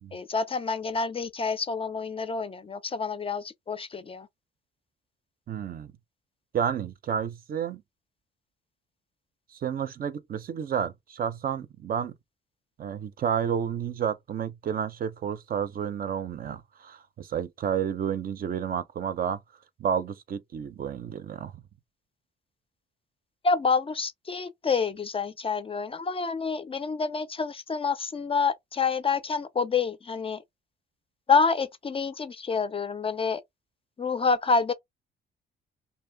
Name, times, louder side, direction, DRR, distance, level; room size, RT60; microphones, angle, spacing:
voice 1, 0.1-4.3 23.4-30.4 31.3-33.4 34.0-34.7, left 5 dB, 30° left, 0.4 m, -27 dB
voice 2, 5.5-5.9 6.5-7.8 9.5-12.1 12.8-19.4 19.8-21.6, right 8 dB, 50° right, 0.5 m, -31 dB
2.7 x 2.1 x 3.3 m
cardioid pair, 90°, 20 cm